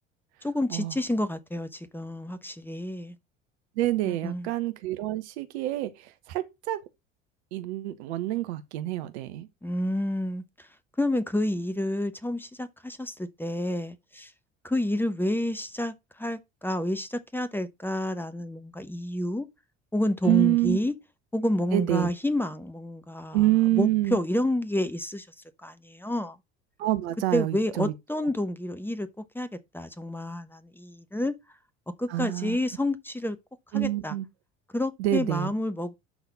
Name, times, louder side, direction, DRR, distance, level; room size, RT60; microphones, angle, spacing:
voice 1, 0.4-3.1 4.1-4.5 9.6-10.7 11.0-14.3 14.6-19.5 19.9-20.9 21.3-23.4 23.7-25.3 25.6-26.4 27.3-29.5 29.7-31.3 32.0-33.4 33.7-34.1 34.7-35.9, left 1 dB, 5° left, 1.0 m, -29 dB
voice 2, 3.8-6.8 7.5-9.5 20.2-20.8 21.7-22.1 23.3-24.2 26.8-28.3 32.1-32.6 33.7-34.3 35.0-35.5, right 16 dB, 65° right, 0.9 m, -27 dB
12.0 x 4.0 x 4.1 m
figure-of-eight pair, 65°, 36 cm